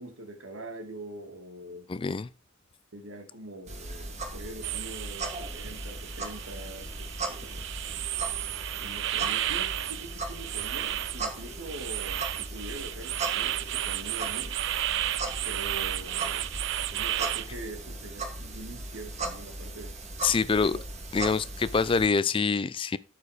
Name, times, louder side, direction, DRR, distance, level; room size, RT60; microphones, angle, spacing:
voice 1, 0.0-1.9 2.9-7.7 8.7-14.6 15.4-16.5 16.9-20.0 20.3-20.8, right 1 dB, 85° right, 2.3 m, -43 dB
voice 2, 1.9-2.3 20.2-20.7 21.1-23.0, left 5 dB, 25° left, 0.4 m, -25 dB
sound 1, 3.7-22.1, right 2 dB, 35° right, 1.5 m, -38 dB
sound 2, 4.6-17.5, right 13 dB, 65° right, 0.4 m, -33 dB
12.5 x 4.8 x 4.9 m
head